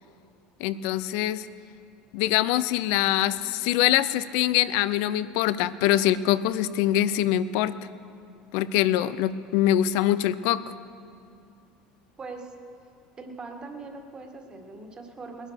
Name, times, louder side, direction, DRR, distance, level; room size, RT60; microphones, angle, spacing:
voice 1, 0.6-1.5 2.1-7.8 8.5-10.6, left 13 dB, 75° left, 16 dB, 0.6 m, -24 dB
voice 2, 12.2-12.5 13.2-15.5, right 3 dB, 25° right, 4 dB, 1.8 m, -41 dB
19.5 x 11.0 x 6.5 m, 2.4 s
supercardioid pair, 110°, 3 cm